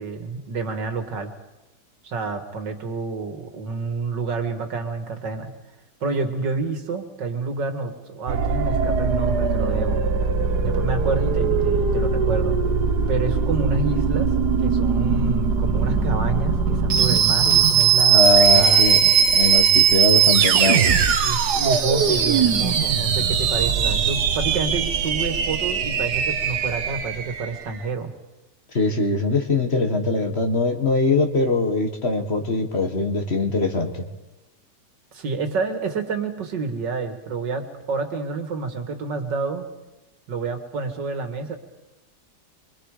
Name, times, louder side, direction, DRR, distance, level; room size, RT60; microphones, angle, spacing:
voice 1, 0.0-1.3 2.0-5.5 6.0-10.0 10.6-12.6 13.1-14.3 14.6-18.8 21.2-28.1 35.1-39.7 40.3-41.6, right 4 dB, 90° right, 6 dB, 2.6 m, -28 dB
sound 1, 8.3-27.6, right 6 dB, 70° right, 1.7 m, -20 dB
voice 2, 18.1-21.0 28.7-33.9, left 3 dB, 40° left, 5 dB, 1.9 m, -22 dB
26.5 x 24.0 x 5.0 m, 1.0 s
omnidirectional pair, 1.9 m